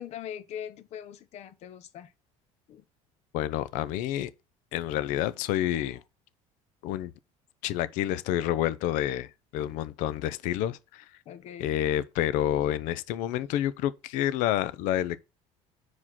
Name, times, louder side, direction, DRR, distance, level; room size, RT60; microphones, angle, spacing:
voice 1, 0.0-2.1 2.7-2.8 5.7-5.9 11.2-11.8, left 9 dB, 55° left, 1.1 m, -41 dB
voice 2, 3.3-4.3 4.7-6.0 6.8-7.1 7.6-11.1 11.6-15.2, left 12 dB, 75° left, 0.7 m, -29 dB
6.2 x 5.0 x 5.7 m
cardioid pair, 135°, 13 cm